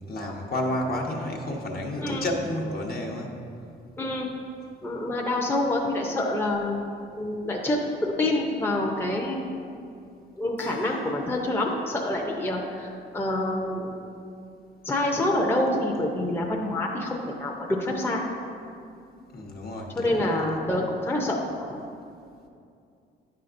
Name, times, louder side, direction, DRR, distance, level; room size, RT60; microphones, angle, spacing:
voice 1, 0.0-3.3 19.3-20.6, left 1 dB, 50° left, 0 dB, 1.0 m, -31 dB
voice 2, 4.0-4.3 4.8-6.8 7.2-9.7 10.4-13.9 14.8-18.2 20.0-21.8, left 1 dB, 10° left, -1 dB, 0.6 m, -27 dB
Keyboard (musical), 10.6-11.7 12.0-12.7, left 6 dB, 80° left, 0.6 m, -45 dB
9.0 x 5.7 x 2.6 m, 2.5 s
cardioid pair, 90°, 20 cm